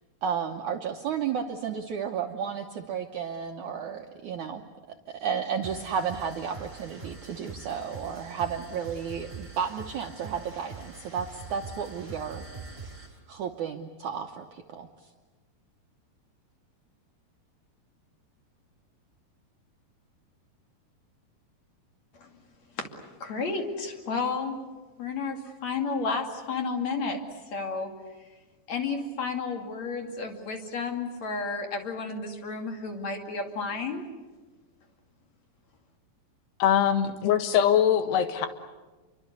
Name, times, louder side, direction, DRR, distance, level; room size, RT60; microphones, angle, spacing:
voice 1, 0.2-4.6 5.1-12.5 13.3-14.9, right 7 dB, 75° right, 3 dB, 1.8 m, -32 dB
sound 1, 5.6-13.2, right 4 dB, 15° right, 4.4 m, -44 dB
voice 2, 22.8-24.6 25.0-27.2 27.5-27.9 28.7-34.0, left 4 dB, 45° left, 4 dB, 3.2 m, -32 dB
voice 3, 36.6-38.5, left 9 dB, 75° left, 9 dB, 3.5 m, -22 dB
28.5 x 24.0 x 8.1 m, 1.3 s
omnidirectional pair, 4.9 m